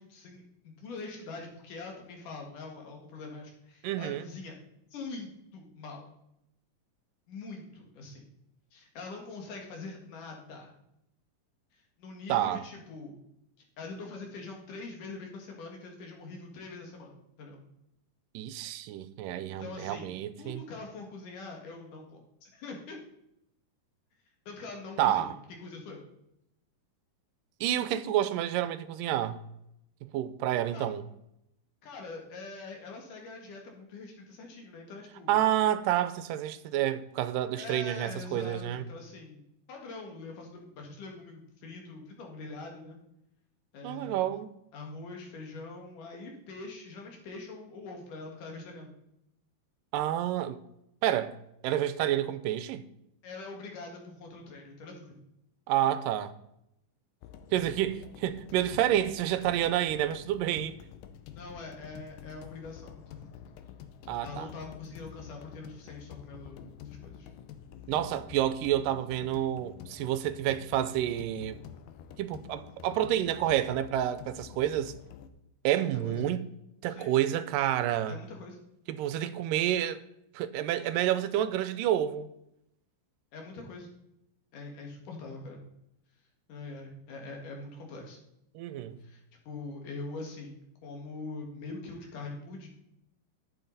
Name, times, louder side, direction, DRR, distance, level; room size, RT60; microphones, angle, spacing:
voice 1, 0.0-4.5 4.9-6.1 7.3-8.3 8.7-10.8 12.0-13.2 13.8-17.6 19.6-20.1 20.4-23.0 24.5-25.4 25.6-26.0 30.7-30.9 31.8-35.4 37.6-39.4 39.7-43.0 43.7-44.3 44.7-48.9 53.2-55.2 61.4-63.3 64.2-67.3 75.8-76.2 76.9-77.1 78.1-78.6 83.3-83.9 84.5-85.6 86.5-88.2 89.0-92.7, left 3 dB, 75° left, 3.5 m, -43 dB
voice 2, 3.8-4.3 12.3-12.7 18.3-20.6 25.0-25.3 27.6-29.4 30.0-31.0 35.3-38.8 43.8-44.5 49.9-50.6 51.0-51.4 51.6-52.9 55.7-56.3 57.5-60.8 64.1-64.5 67.9-71.6 72.2-74.9 75.6-76.4 76.8-78.2 78.9-80.0 80.3-82.3 88.6-89.0, right 12 dB, 90° right, 2.3 m, -29 dB
sound 1, 57.2-75.3, left 9 dB, 90° left, 2.4 m, -48 dB
11.0 x 8.5 x 4.1 m
omnidirectional pair, 3.8 m